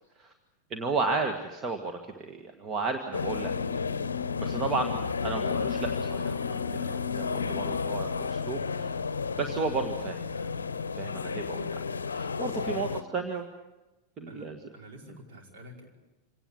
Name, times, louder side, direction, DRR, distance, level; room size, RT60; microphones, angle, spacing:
voice 1, 0.7-3.8 4.4-5.0 5.2-6.4 6.7-8.9 9.4-10.5 10.9-11.8 12.1-13.4 14.2-14.6, right 4 dB, 30° right, 5 dB, 1.8 m, -33 dB
sound 1, 3.1-13.0, left 5 dB, 70° left, 0.7 m, -32 dB
voice 2, 12.4-13.2 14.3-15.9, right 1 dB, 50° right, 1 dB, 5.2 m, -50 dB
26.5 x 18.0 x 8.7 m, 1.1 s
figure-of-eight pair, 90°, 0 cm